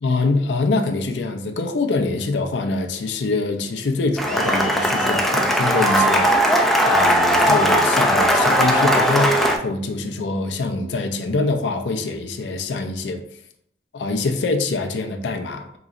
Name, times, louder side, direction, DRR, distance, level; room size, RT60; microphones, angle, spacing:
voice 1, 0.0-6.6 6.8-13.2 13.9-15.8, left 3 dB, 70° left, 5 dB, 0.4 m, -24 dB
Cheering / Applause, 4.2-9.6, equal, ahead, 0.3 m, -18 dB
3.9 x 3.0 x 2.4 m, 0.70 s
head